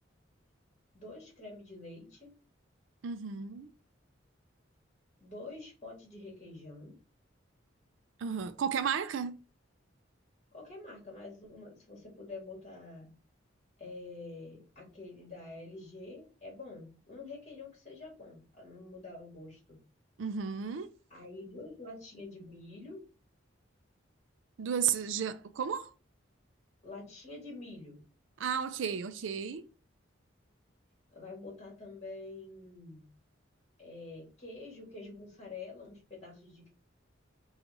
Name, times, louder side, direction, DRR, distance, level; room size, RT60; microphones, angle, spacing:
voice 1, 0.9-2.4 5.2-6.9 10.5-13.1 13.8-19.8 21.1-23.0 26.8-28.0 31.1-33.1 33.8-36.7, left 3 dB, 35° left, 1.9 m, -47 dB
voice 2, 3.0-3.7 8.2-9.4 20.2-20.9 24.6-25.9 28.4-29.7, right 7 dB, 75° right, 0.4 m, -33 dB
5.2 x 2.4 x 2.9 m
head